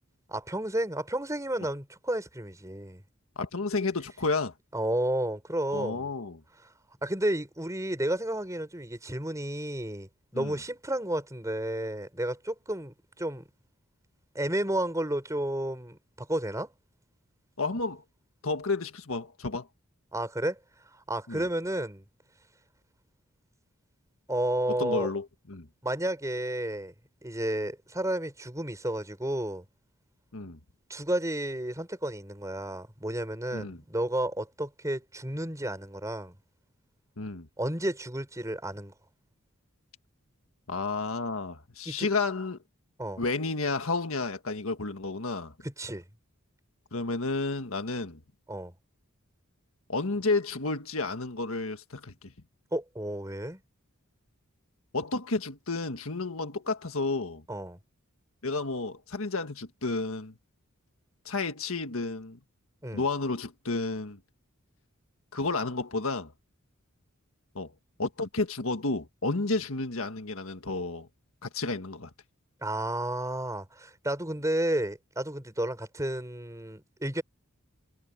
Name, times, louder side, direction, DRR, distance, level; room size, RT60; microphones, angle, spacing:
voice 1, 0.3-3.0 4.7-6.1 7.0-13.5 14.3-16.7 20.1-20.6 20.9-22.0 24.3-25.1 25.8-26.9 27.2-29.6 30.9-36.4 37.6-38.9 41.9-42.1 43.0-43.2 45.6-46.0 48.5-48.7 52.7-53.6 57.5-57.8 62.8-63.0 72.6-77.2, right 1 dB, 15° right, 5.7 m, -32 dB
voice 2, 3.3-4.5 5.7-6.4 10.3-10.5 17.6-18.0 18.4-19.7 21.3-21.4 24.8-25.7 30.3-30.6 33.5-33.8 37.2-37.5 40.7-42.6 43.2-45.5 46.9-48.2 49.9-52.1 54.9-57.4 58.4-60.3 61.2-62.4 62.9-64.2 65.3-66.3 67.5-67.7 68.0-71.1 71.4-72.1, left 3 dB, 75° left, 1.7 m, -31 dB
head